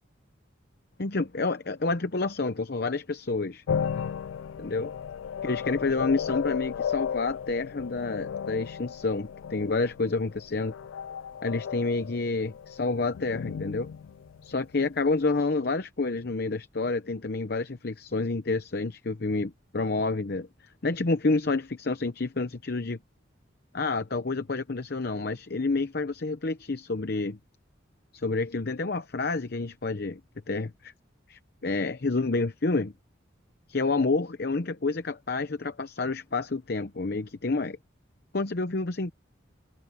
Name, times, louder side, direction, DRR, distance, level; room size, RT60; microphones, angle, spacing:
voice 1, 1.0-3.6 4.6-4.9 5.4-10.7 11.4-13.9 14.4-20.5 20.8-23.0 23.7-27.4 28.1-30.2 30.5-30.9 31.3-32.9 33.7-37.8 38.3-39.1, left 3 dB, 55° left, 0.8 m, -29 dB
sound 1, 3.7-15.1, left 7 dB, 85° left, 0.3 m, -34 dB
head